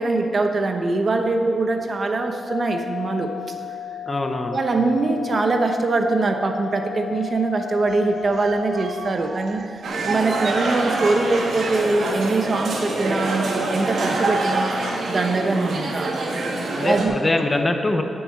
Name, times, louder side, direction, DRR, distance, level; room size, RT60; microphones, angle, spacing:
voice 1, 0.0-3.3 4.5-13.5 13.7-16.1 16.8-17.2, right 3 dB, 45° right, 5 dB, 1.0 m, -23 dB
sound 1, 2.5-9.1, left 9 dB, 60° left, 0.5 m, -34 dB
voice 2, 4.1-4.6 16.7-18.0, left 2 dB, 25° left, 5 dB, 0.9 m, -23 dB
sound 2, 7.9-12.3 12.6-12.8, right 6 dB, 60° right, 0.5 m, -36 dB
sound 3, 9.8-17.1, right 2 dB, 80° right, 1.6 m, -25 dB
9.1 x 8.0 x 7.5 m, 2.4 s
wide cardioid pair, 105°, 0 cm